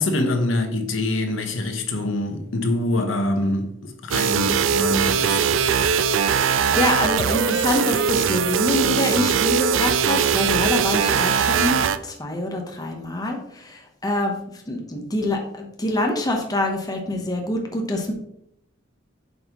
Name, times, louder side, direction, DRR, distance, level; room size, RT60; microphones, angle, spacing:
voice 1, 0.0-5.6, left 2 dB, 75° left, 1.0 m, -25 dB
sound 1, 4.1-12.0, right 7 dB, 75° right, 0.4 m, -21 dB
voice 2, 6.5-14.4 14.7-18.1, left 1 dB, 20° left, 1.0 m, -25 dB
7.8 x 5.4 x 3.0 m
head